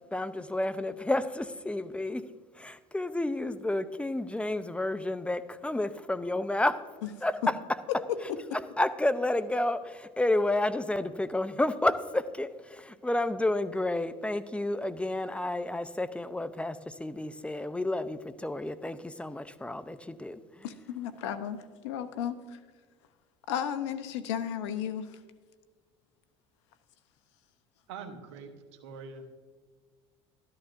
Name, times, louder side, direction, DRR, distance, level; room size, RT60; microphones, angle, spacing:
voice 1, 0.1-2.2 2.6-6.8 7.2-7.3 8.8-20.4, left 1 dB, 10° left, 13 dB, 0.6 m, -30 dB
voice 2, 20.6-22.6 23.5-25.2, left 9 dB, 80° left, 11 dB, 0.8 m, -34 dB
voice 3, 27.9-29.3, right 5 dB, 85° right, 5 dB, 1.0 m, -44 dB
12.5 x 11.0 x 2.6 m, 1.5 s
hypercardioid pair, 80°, 15 cm